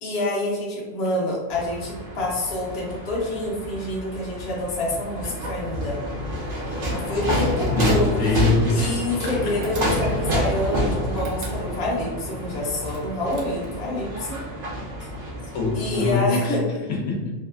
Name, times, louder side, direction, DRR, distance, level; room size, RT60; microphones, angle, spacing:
voice 1, 0.0-6.0 6.9-8.2 8.7-14.4 15.7-16.8, left 2 dB, 50° left, -3 dB, 1.0 m, -27 dB
sound 1, 1.5-16.1, equal, 60° right, 1.2 m, -28 dB
voice 2, 7.7-8.9 9.2-9.5 15.5-16.5 16.9-17.3, left 3 dB, 85° left, -1 dB, 1.2 m, -23 dB
sound 2, 9.6-10.3 11.1-12.0 12.9-13.9, right 3 dB, 90° right, 1.1 m, -39 dB
3.1 x 3.1 x 2.4 m, 1.2 s
omnidirectional pair, 1.4 m